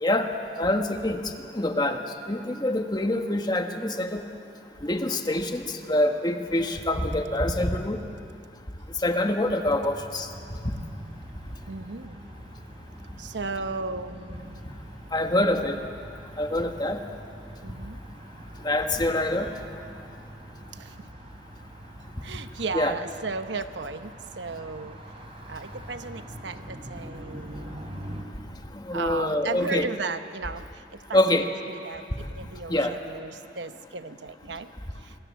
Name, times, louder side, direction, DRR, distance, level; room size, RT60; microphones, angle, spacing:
voice 1, 0.6-1.2 1.5-2.0 2.3-4.2 4.8-8.0 9.0-10.3 10.6-10.7 15.1-15.8 16.4-17.0 18.6-19.5 22.7-23.0 28.7-29.9 31.1-31.5 32.7-33.0, left 1 dB, 25° left, 5 dB, 1.4 m, -25 dB
sound 1, 9.8-28.2, equal, 35° right, 3.5 m, -44 dB
voice 2, 11.7-12.2 13.2-14.6 17.6-18.0 20.8-20.9 22.2-25.0 25.5-27.8 28.9-30.6 31.1-31.4 31.7-34.7, right 4 dB, 85° right, 9 dB, 1.0 m, -35 dB
26.5 x 20.5 x 7.6 m, 2.6 s
head